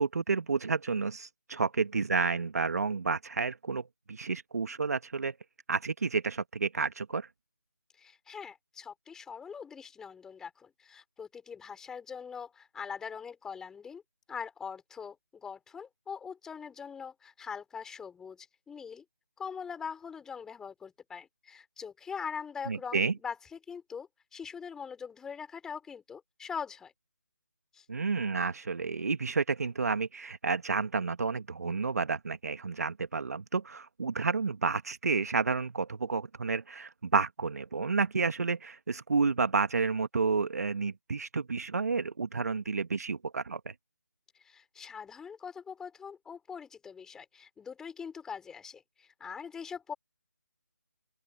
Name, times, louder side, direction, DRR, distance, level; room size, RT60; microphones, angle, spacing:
voice 1, 0.0-5.3 5.7-7.3 22.7-23.1 27.9-43.7, right 4 dB, 55° right, 1.6 m, -30 dB
voice 2, 8.0-14.0 14.3-19.0 19.4-26.9 27.7-27.8 44.4-49.9, left 6 dB, 5° left, 4.3 m, -42 dB
open air
figure-of-eight pair, 155°, 10 cm